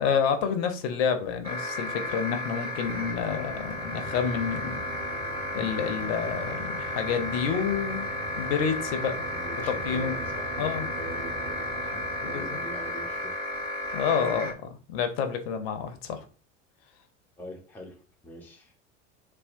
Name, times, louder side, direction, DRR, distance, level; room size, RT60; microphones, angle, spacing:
voice 1, 0.0-4.8 5.5-8.1 8.4-9.2 9.8-10.2 10.6-10.9 12.2-12.4 13.9-14.6 14.9-16.2, left 6 dB, 55° left, 0.6 m, -28 dB
sound 1, 1.4-14.5, left 2 dB, 15° right, 1.2 m, -33 dB
sound 2, 2.7-13.2, right 2 dB, 60° right, 1.4 m, -42 dB
voice 2, 9.1-13.4 17.4-18.7, right 1 dB, 5° left, 0.4 m, -44 dB
2.7 x 2.1 x 2.5 m
figure-of-eight pair, 75°, 37 cm